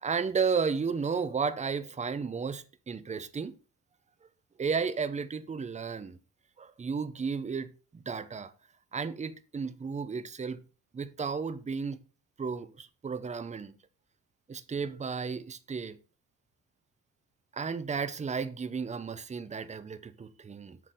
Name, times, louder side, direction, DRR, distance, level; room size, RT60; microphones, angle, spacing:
voice 1, 0.0-3.6 4.6-6.2 6.6-8.5 8.9-10.6 10.9-12.0 12.4-13.8 14.5-16.0 17.5-20.8, right 5 dB, 20° right, 0.7 m, -33 dB
7.5 x 4.0 x 6.6 m
cardioid pair, 110°, 33 cm